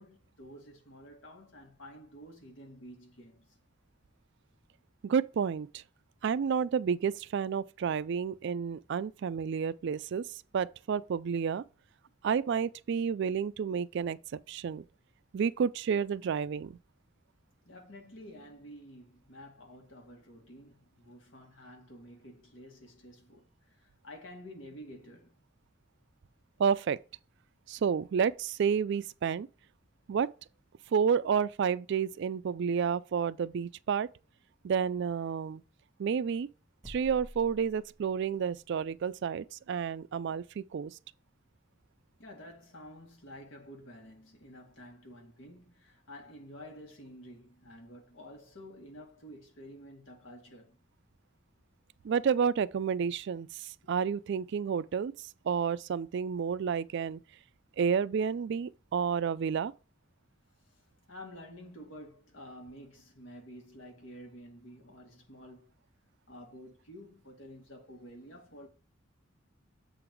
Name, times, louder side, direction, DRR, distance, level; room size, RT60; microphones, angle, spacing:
voice 1, 0.0-3.5 17.7-25.4 42.2-50.8 60.6-65.7 66.3-68.7, equal, 70° left, 2.0 m, -50 dB
voice 2, 5.0-5.8 6.2-10.3 10.5-11.6 12.2-14.2 14.5-14.8 15.3-16.8 26.6-27.0 27.7-29.5 30.1-30.3 30.9-34.1 34.6-35.6 36.0-36.5 36.9-40.9 52.0-55.1 55.4-57.2 57.8-59.7, right 6 dB, 60° right, 0.3 m, -30 dB
sound 1, 36.8-38.4, equal, 15° right, 1.6 m, -49 dB
7.6 x 3.9 x 4.5 m
head